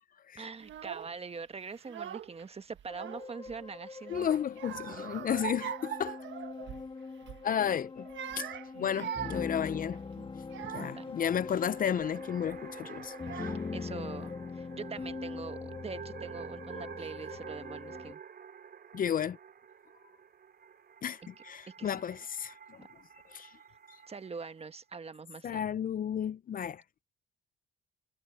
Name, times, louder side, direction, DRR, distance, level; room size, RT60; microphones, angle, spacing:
voice 1, 0.3-4.3 10.6-11.1 13.7-18.2 21.8-22.0 22.8-22.9 24.1-25.6, right 5 dB, 30° right, 1.3 m, -43 dB
Child speech kid speaking / Crying sobbing, 0.6-1.1 1.8-2.4 2.7-3.6 4.0-6.9 7.2-7.5 8.0-11.1 11.7-12.1 12.9-13.0 13.2-13.9, right 10 dB, 70° right, 1.5 m, -42 dB
sound 1, 2.9-18.1, left 4 dB, 25° left, 1.4 m, -42 dB
voice 2, 4.1-6.2 7.4-8.1 8.4-8.5 8.8-10.0 10.7-13.6 18.9-19.4 21.0-22.8 23.3-23.5 25.4-26.8, left 8 dB, 45° left, 0.5 m, -33 dB
sound 2, 11.3-24.7, right 7 dB, 50° right, 3.5 m, -49 dB
cardioid pair, 90°, 20 cm